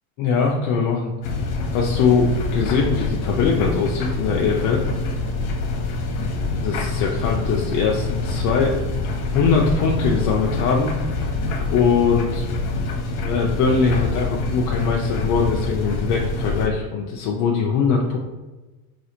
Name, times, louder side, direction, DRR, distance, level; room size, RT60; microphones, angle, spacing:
voice 1, 0.2-1.1 1.7-4.8 6.6-8.8 9.3-10.9 11.7-12.4 13.2-18.2, left 5 dB, 45° left, -2 dB, 0.4 m, -21 dB
sound 1, 1.2-16.7, left 3 dB, 70° left, 0.8 m, -25 dB
3.9 x 2.4 x 2.9 m, 1.2 s
supercardioid pair, 135°, 47 cm